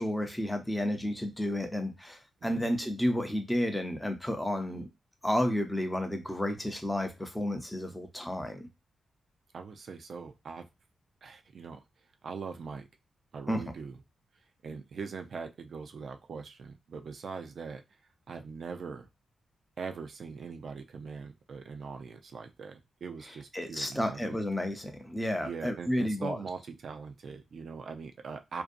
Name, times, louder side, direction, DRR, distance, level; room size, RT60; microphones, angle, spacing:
voice 1, 0.0-4.9 5.2-8.7 13.5-13.6 23.5-26.4, left 1 dB, 5° left, 5 dB, 0.6 m, -31 dB
voice 2, 9.5-10.7 11.2-11.8 12.2-12.9 13.3-14.0 14.6-17.8 18.3-19.1 19.8-24.4 25.4-28.6, right 5 dB, 60° right, 5 dB, 0.4 m, -41 dB
2.6 x 2.2 x 2.5 m, 0.23 s
wide cardioid pair, 120°, 0 cm